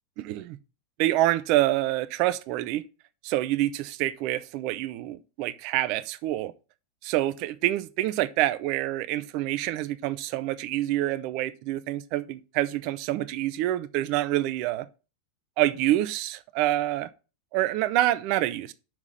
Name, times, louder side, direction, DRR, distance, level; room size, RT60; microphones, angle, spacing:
voice 1, 0.2-0.6 1.0-2.8 3.2-6.5 7.0-14.9 15.6-17.1 17.5-18.7, right 15 dB, 45° right, 0.7 m, -27 dB
6.0 x 5.9 x 6.6 m
figure-of-eight pair, 85°, 0 cm